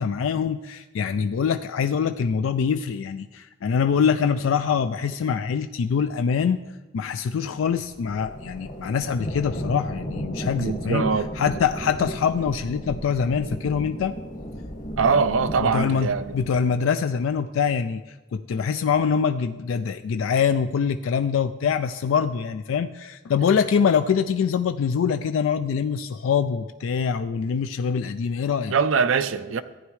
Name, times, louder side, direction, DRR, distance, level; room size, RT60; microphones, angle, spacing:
voice 1, 0.0-6.6 6.9-11.1 11.4-14.2 15.6-16.1 16.3-28.7, left 6 dB, 85° left, 0.4 m, -24 dB
sound 1, 7.6-16.6, equal, 45° left, 1.6 m, -34 dB
voice 2, 10.5-11.3 15.0-16.4 28.7-29.6, right 5 dB, 85° right, 0.5 m, -22 dB
14.5 x 9.5 x 3.2 m
head